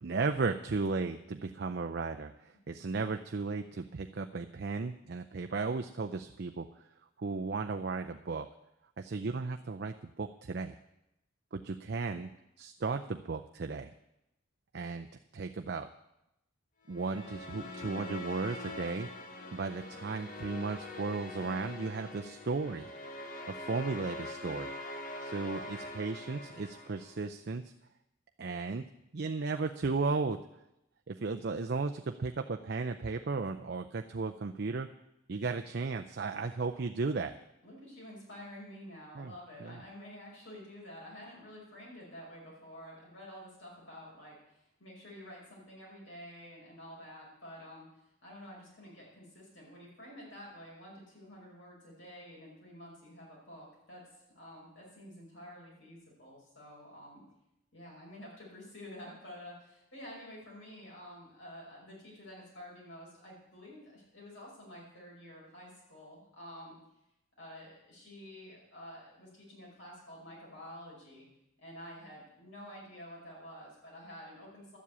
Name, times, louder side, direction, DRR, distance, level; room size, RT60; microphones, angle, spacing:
voice 1, 0.0-6.7 7.2-8.5 9.0-10.8 11.5-12.3 12.6-13.9 14.7-15.1 15.3-15.9 16.9-19.1 19.5-22.9 23.5-24.7 25.2-27.6 28.4-28.8 29.1-30.4 31.1-34.9 35.3-37.4 39.2-39.3 39.6-39.8, right 4 dB, 50° right, 6 dB, 0.5 m, -35 dB
sound 1, 16.9-27.3, left 1 dB, 40° left, 1.2 m, -44 dB
voice 2, 37.6-57.2 57.7-66.8 67.4-71.3 71.6-74.8, equal, 65° left, -4 dB, 5.3 m, -50 dB
12.0 x 7.6 x 8.3 m, 0.86 s
head